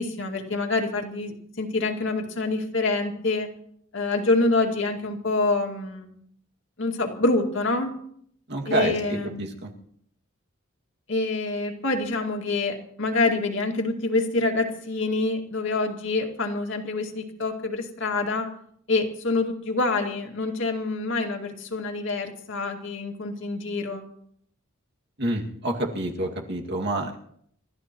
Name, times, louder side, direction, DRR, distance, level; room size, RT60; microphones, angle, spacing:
voice 1, 0.0-3.5 3.9-6.1 6.8-7.9 8.7-9.5 11.1-18.5 18.9-24.0, left 3 dB, 70° left, 2 dB, 2.3 m, -26 dB
voice 2, 8.5-9.7 25.2-27.2, right 2 dB, 60° right, 1 dB, 2.2 m, -28 dB
29.5 x 14.0 x 3.1 m, 0.66 s
head